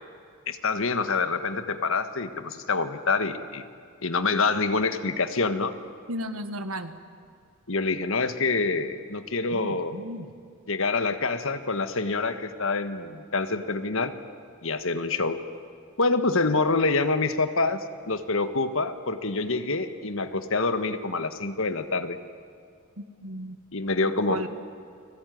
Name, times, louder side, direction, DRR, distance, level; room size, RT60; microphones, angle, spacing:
voice 1, 0.5-3.6 4.0-5.7 7.7-10.0 10.7-14.1 14.6-15.4 16.0-22.2 23.7-24.5, left 3 dB, 65° left, 10 dB, 1.6 m, -26 dB
voice 2, 6.1-6.9 9.5-10.3 23.0-23.6 24.0-24.5, equal, 75° right, 10 dB, 1.7 m, -35 dB
30.0 x 20.5 x 9.4 m, 2.4 s
head